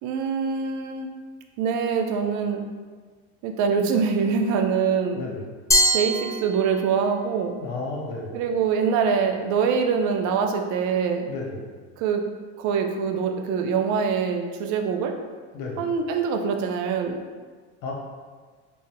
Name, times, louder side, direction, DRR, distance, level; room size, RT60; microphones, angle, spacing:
voice 1, 0.0-1.1 1.6-2.6 3.4-5.2 5.9-7.6 8.3-11.3 12.0-12.2 12.6-15.1 15.8-17.3, right 6 dB, 55° right, 4 dB, 0.5 m, -24 dB
voice 2, 5.1-5.5 7.6-8.4 11.3-11.7 15.5-15.9 17.8-17.9, left 3 dB, 70° left, -2 dB, 0.8 m, -33 dB
Glass, 5.7-7.1, equal, 10° left, 0.4 m, -23 dB
3.7 x 2.0 x 2.7 m, 1.5 s
supercardioid pair, 100°, 36 cm